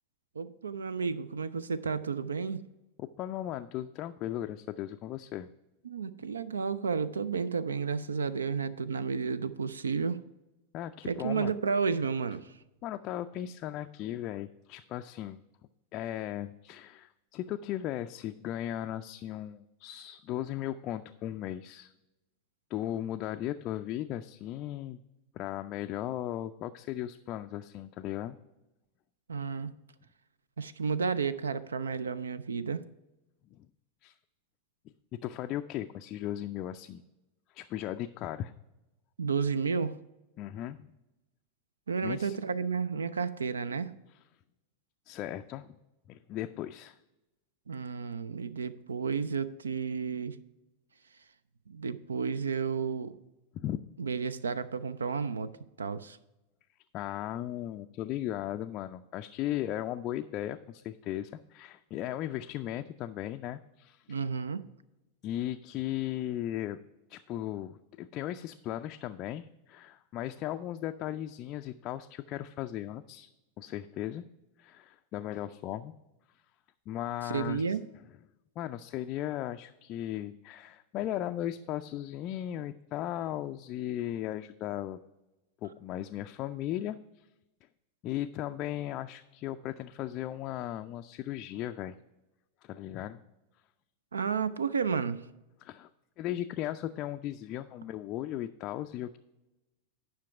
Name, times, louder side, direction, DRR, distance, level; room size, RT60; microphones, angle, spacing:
voice 1, 0.4-2.6 5.8-10.2 11.0-12.6 29.3-29.7 30.6-32.8 39.2-40.0 41.9-43.9 47.7-50.4 51.7-53.2 54.0-55.5 55.8-56.2 64.1-64.6 77.2-77.8 94.1-95.3, right 5 dB, 70° right, 16 dB, 0.3 m, -32 dB
voice 2, 3.0-5.5 10.7-11.5 12.8-15.4 15.9-21.9 22.7-25.0 25.3-28.4 33.5-33.7 34.0-34.1 35.2-37.0 37.5-38.5 40.4-40.8 42.0-42.4 45.1-45.8 46.1-47.0 53.6-53.8 56.9-64.2 65.2-66.8 67.1-73.3 73.6-74.3 74.6-75.9 76.9-77.6 78.6-85.0 85.6-87.2 88.0-91.9 92.6-93.2 95.6-95.9 96.2-99.2, left 12 dB, 35° left, 7 dB, 0.3 m, -37 dB
10.5 x 5.7 x 4.8 m, 0.98 s
figure-of-eight pair, 90°, 0 cm